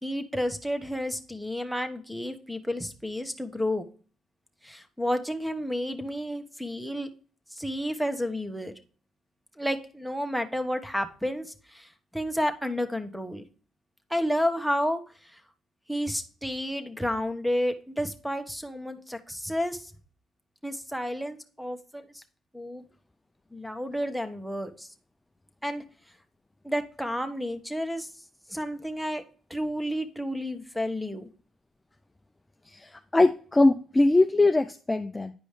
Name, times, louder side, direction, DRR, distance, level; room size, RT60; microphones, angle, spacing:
voice 1, 0.0-3.9 4.6-7.1 7.5-8.7 9.6-13.4 14.1-15.4 15.9-19.9 20.6-22.2 22.5-22.8 23.5-24.9 25.6-25.8 26.6-28.1 28.5-29.2 29.5-31.3, equal, ahead, 9 dB, 1.1 m, -31 dB
voice 2, 32.7-35.3, left 2 dB, 15° left, 7 dB, 0.5 m, -22 dB
9.8 x 5.0 x 3.3 m, 0.40 s
cardioid pair, 90°, 0 cm